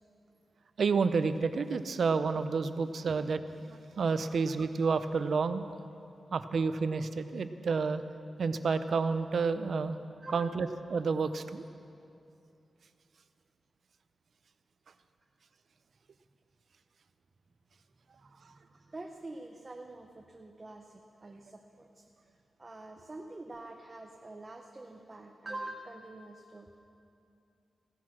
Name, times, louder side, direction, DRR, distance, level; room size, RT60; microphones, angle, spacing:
voice 1, 0.8-5.6 6.3-8.0 8.4-10.0 10.3-11.6, right 4 dB, 60° right, 11 dB, 0.6 m, -30 dB
voice 2, 10.2-10.6 18.2-20.9 21.2-22.0 22.6-26.7, right 2 dB, 25° right, 2 dB, 0.7 m, -46 dB
16.0 x 10.5 x 6.2 m, 2.7 s
wide cardioid pair, 170°, 0 cm